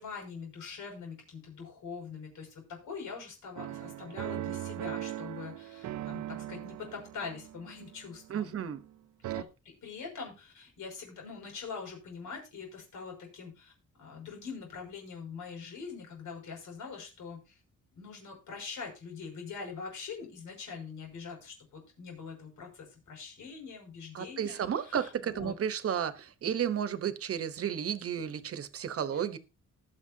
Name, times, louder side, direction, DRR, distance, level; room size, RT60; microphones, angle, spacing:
voice 1, 0.0-8.5 9.3-9.5 9.8-13.7 14.0-17.4 17.9-25.6 29.1-29.2, left 5 dB, 90° left, 1 dB, 6.1 m, -43 dB
sound 1, 3.6-8.9 9.2-9.4, right 14 dB, 70° right, 0.5 m, -40 dB
voice 2, 8.3-8.8 9.3-9.4 24.1-29.4, right 8 dB, 50° right, 12 dB, 1.0 m, -33 dB
20.0 x 6.8 x 2.8 m, 0.29 s
wide cardioid pair, 165°, 30 cm